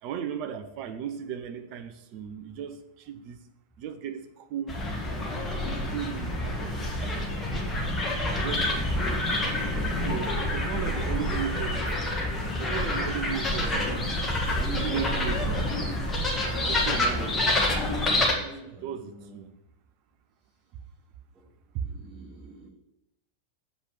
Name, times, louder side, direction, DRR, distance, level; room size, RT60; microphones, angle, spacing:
voice 1, 0.0-3.4 3.8-4.8 5.9-7.7 8.4-9.3 10.0-11.9 12.6-14.1 14.8-15.7 16.5-19.5 20.7-20.8 21.7-21.8, right 8 dB, 45° right, 8 dB, 0.8 m, -36 dB
sound 1, 4.7-18.3, left 1 dB, 15° left, 1.7 m, -27 dB
voice 2, 13.5-13.9 14.5-15.0 18.0-19.5 21.3-21.5 21.8-22.7, right 3 dB, 15° right, -7 dB, 2.2 m, -43 dB
7.3 x 5.0 x 7.1 m, 0.85 s
figure-of-eight pair, 90°, 0 cm